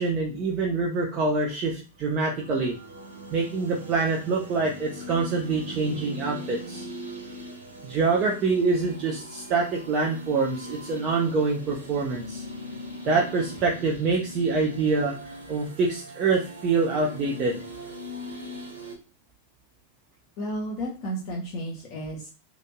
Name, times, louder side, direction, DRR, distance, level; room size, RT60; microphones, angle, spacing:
voice 1, 0.0-2.7 3.3-6.9 7.8-12.4 13.0-15.1 15.5-17.6, right 4 dB, 35° right, -2 dB, 0.5 m, -25 dB
sound 1, 2.0-18.9, equal, 75° right, 0.7 m, -40 dB
voice 2, 20.4-22.3, right 1 dB, 45° left, -2 dB, 0.8 m, -32 dB
2.9 x 2.5 x 2.2 m, 0.33 s
figure-of-eight pair, 90°, 0 cm